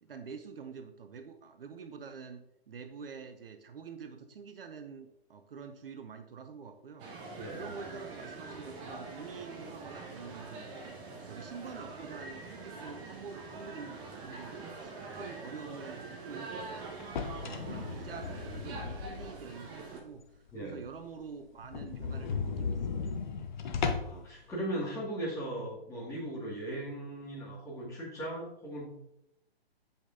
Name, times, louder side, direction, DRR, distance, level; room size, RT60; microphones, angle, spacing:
voice 1, 0.0-10.9 11.3-17.0 17.3-23.0, right 5 dB, 60° right, 8 dB, 0.7 m, -47 dB
sound 1, 7.0-20.0, right 3 dB, 15° right, 0.7 m, -44 dB
voice 2, 7.3-7.7 15.1-15.3 20.5-20.8 23.7-28.9, right 1 dB, 10° left, -6 dB, 2.1 m, -38 dB
sound 2, 17.0-19.6 20.0-20.1 20.5-20.6 20.9-21.0 21.2-21.3 21.6-24.3, left 5 dB, 45° left, 0.8 m, -36 dB
8.2 x 5.2 x 2.7 m, 0.80 s
figure-of-eight pair, 135°, 31 cm